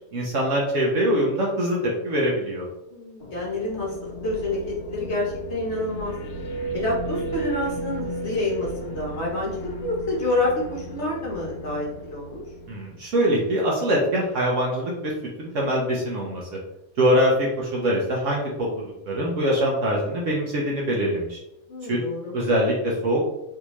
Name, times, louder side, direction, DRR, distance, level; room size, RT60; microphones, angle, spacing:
voice 1, 0.1-1.8 2.0-2.6 12.7-15.1 15.4-16.5 17.0-18.7 19.1-21.4 21.9-22.0 22.3-23.2, equal, 65° right, -3 dB, 1.0 m, -23 dB
voice 2, 2.9-6.1 6.7-12.4 21.7-22.3, left 2 dB, 55° left, -4 dB, 1.1 m, -28 dB
sound 1, 3.2-13.4, right 2 dB, 80° left, 1.2 m, -35 dB
3.5 x 2.6 x 2.9 m, 0.91 s
omnidirectional pair, 1.5 m